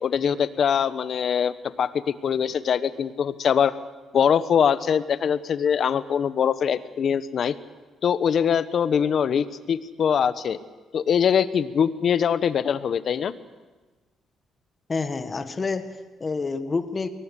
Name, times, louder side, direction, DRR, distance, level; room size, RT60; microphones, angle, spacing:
voice 1, 0.0-3.7 4.1-7.5 8.0-10.6 10.9-13.3, left 7 dB, 55° left, 14 dB, 1.1 m, -23 dB
voice 2, 14.9-17.1, left 4 dB, 30° left, 9 dB, 1.7 m, -28 dB
22.5 x 18.5 x 8.3 m, 1.3 s
cardioid pair, 95°, 0 cm